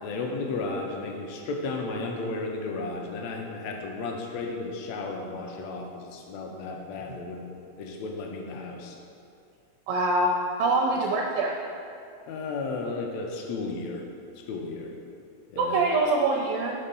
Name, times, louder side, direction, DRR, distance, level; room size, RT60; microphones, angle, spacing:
voice 1, 0.0-7.5 7.8-9.0 12.3-14.1 14.5-15.0 15.5-15.8, left 3 dB, 80° left, 2 dB, 1.6 m, -34 dB
voice 2, 9.9-10.3 10.6-11.5 15.6-16.7, right 2 dB, 80° right, 0 dB, 1.6 m, -24 dB
5.4 x 3.9 x 5.2 m, 2.4 s
omnidirectional pair, 3.5 m